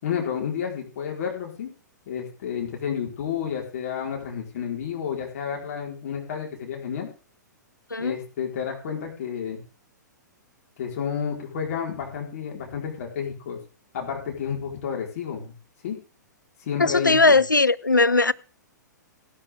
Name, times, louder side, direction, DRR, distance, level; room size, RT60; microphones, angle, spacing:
voice 1, 0.0-1.7 2.1-7.1 8.0-9.6 10.8-13.6 13.9-15.5 15.8-16.0 16.6-17.3, left 7 dB, 50° left, 4.4 m, -30 dB
voice 2, 16.8-18.3, left 3 dB, 85° left, 0.7 m, -19 dB
17.5 x 12.5 x 3.7 m
figure-of-eight pair, 110°, 10 cm